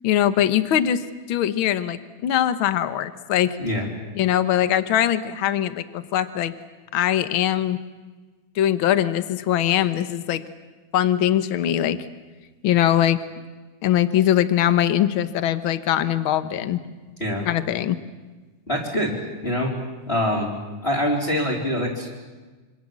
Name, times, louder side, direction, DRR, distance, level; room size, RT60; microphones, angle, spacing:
voice 1, 0.0-1.0 1.3-3.6 4.1-6.5 6.9-7.8 8.6-10.4 10.9-12.0 12.6-13.2 13.8-16.8 17.4-18.0, left 11 dB, 60° left, 12 dB, 1.4 m, -21 dB
voice 2, 18.7-19.2 19.4-19.7 20.1-20.5 20.8-22.1, left 1 dB, 15° left, -3 dB, 4.0 m, -24 dB
27.0 x 26.0 x 7.5 m, 1.3 s
omnidirectional pair, 3.6 m